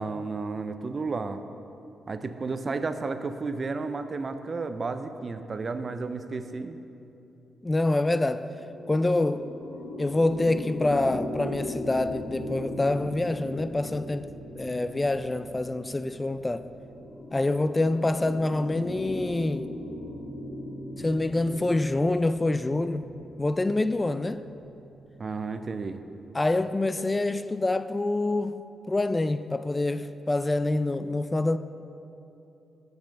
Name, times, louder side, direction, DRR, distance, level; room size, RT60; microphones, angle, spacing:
voice 1, 0.0-1.4 2.1-6.8 25.2-26.0, right 4 dB, 45° right, 0.6 m, -32 dB
voice 2, 7.6-8.5 8.9-9.5 10.0-14.3 14.5-16.7 17.3-19.7 21.0-23.0 23.4-24.4 26.3-31.6, left 2 dB, 25° left, 0.3 m, -26 dB
sound 1, 8.4-25.6, left 1 dB, 60° left, 1.2 m, -39 dB
7.3 x 7.2 x 6.5 m
cardioid pair, 60°, 0 cm